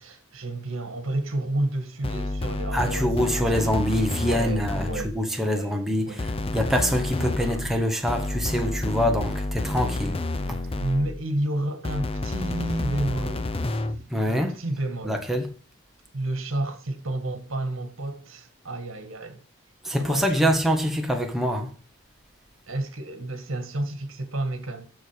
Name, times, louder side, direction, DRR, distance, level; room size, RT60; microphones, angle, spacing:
voice 1, 0.0-3.7 4.2-6.3 7.2-7.6 10.8-13.5 14.3-15.2 16.1-19.4 20.0-20.6 22.7-24.9, right 1 dB, 65° right, 1.6 m, -31 dB
sound 1, 2.0-5.3 6.2-11.3 11.8-14.1, left 2 dB, 25° left, 0.6 m, -30 dB
voice 2, 2.7-10.2 14.1-14.6 15.0-15.5 19.8-21.7, equal, ahead, 1.1 m, -25 dB
7.5 x 6.6 x 5.0 m
head